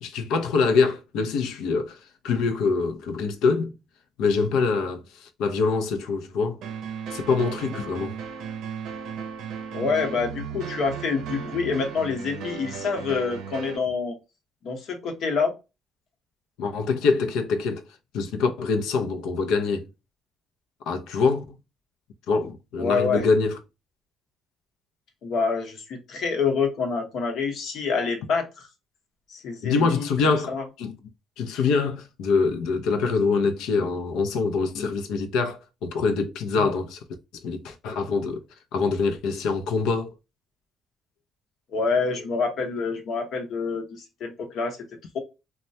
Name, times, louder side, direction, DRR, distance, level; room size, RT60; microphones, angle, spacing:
voice 1, 0.0-2.0 2.2-3.7 4.2-6.6 7.1-8.2 16.6-17.8 18.1-19.9 20.9-21.4 22.3-23.6 29.6-30.9 31.4-37.0 37.4-38.4 38.7-40.1, left 4 dB, 85° left, 0.6 m, -24 dB
sound 1, 6.6-13.8, right 7 dB, 75° right, 0.5 m, -35 dB
voice 2, 9.7-14.2 14.6-15.5 22.8-23.2 25.2-28.7 29.3-30.1 30.5-30.6 41.7-44.8, left 5 dB, 65° left, 1.0 m, -27 dB
3.1 x 2.2 x 2.6 m
cardioid pair, 100°, 0 cm